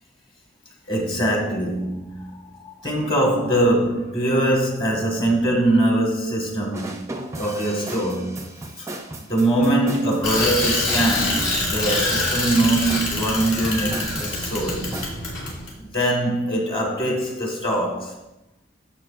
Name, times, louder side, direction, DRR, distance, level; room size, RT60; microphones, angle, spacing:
voice 1, 0.9-8.9 9.3-14.9 15.8-18.2, right 1 dB, 25° left, 1.6 m, -23 dB
sound 1, 6.7-15.1, right 2 dB, 15° right, 0.6 m, -36 dB
Bicycle, 10.2-15.7, left 2 dB, 60° left, 2.9 m, -25 dB
11.0 x 6.9 x 2.5 m
head